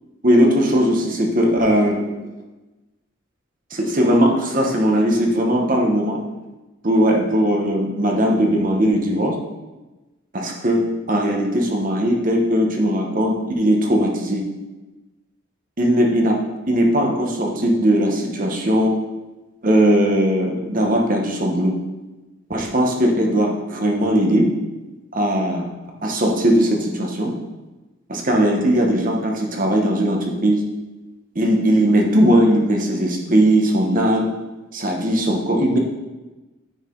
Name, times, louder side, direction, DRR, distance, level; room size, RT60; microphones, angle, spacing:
voice 1, 0.2-2.1 3.7-6.2 6.8-9.4 10.3-14.4 15.8-18.9 19.6-21.7 22.5-24.5 25.1-25.7 26.0-27.3 28.1-30.6 31.3-34.3 34.7-35.8, equal, 40° right, 1 dB, 1.1 m, -19 dB
9.0 x 4.8 x 3.8 m, 1.1 s
head